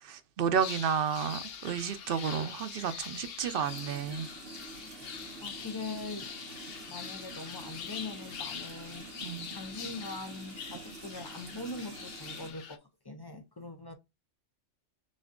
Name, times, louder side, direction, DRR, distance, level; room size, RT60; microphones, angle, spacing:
voice 1, 0.0-4.3 9.2-9.5, right 7 dB, 60° right, 0.7 m, -31 dB
sound 1, 0.6-12.8, left 8 dB, 60° left, 0.8 m, -44 dB
sound 2, 3.6-12.5, right 4 dB, 85° right, 1.3 m, -48 dB
voice 2, 5.0-6.3 6.9-9.1 9.5-13.9, left 2 dB, 40° left, 0.3 m, -42 dB
6.4 x 2.6 x 2.4 m
omnidirectional pair, 1.2 m